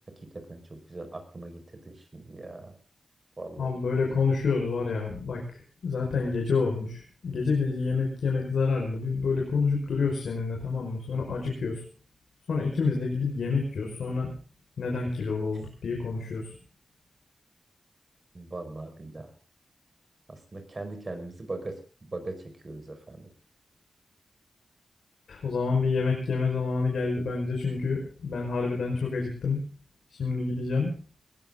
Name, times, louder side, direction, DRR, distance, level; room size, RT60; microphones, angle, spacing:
voice 1, 0.3-2.7 3.4-4.1 18.3-19.3 20.3-23.3, right 2 dB, 40° right, 7 dB, 5.3 m, -40 dB
voice 2, 3.6-5.4 5.8-11.8 12.5-14.3 14.8-16.5 25.3-29.6 30.1-30.9, left 4 dB, 85° left, 0 dB, 5.3 m, -28 dB
20.0 x 18.0 x 3.8 m, 0.39 s
wide cardioid pair, 75°, 0 cm